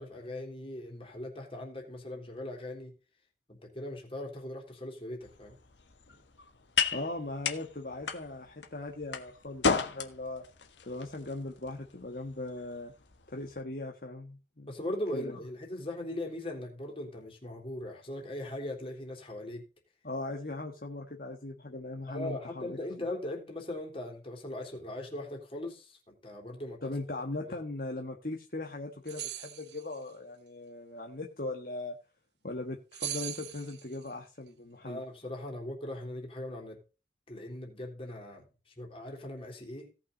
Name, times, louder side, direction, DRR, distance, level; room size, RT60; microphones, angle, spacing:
voice 1, 0.0-2.9 3.5-5.5 14.7-19.6 22.1-26.9 27.4-27.5 34.8-36.8 37.3-39.9, left 1 dB, 30° left, 3.5 m, -39 dB
sound 1, 5.2-13.6, left 5 dB, 85° left, 1.5 m, -36 dB
voice 2, 6.9-10.4 10.9-12.9 13.3-14.7 15.1-15.4 20.0-22.8 26.8-31.9 32.4-35.0, left 2 dB, 50° left, 1.5 m, -39 dB
sound 2, 29.1-29.9 32.9-34.1, right 11 dB, 70° right, 1.1 m, -39 dB
17.5 x 6.0 x 4.0 m
head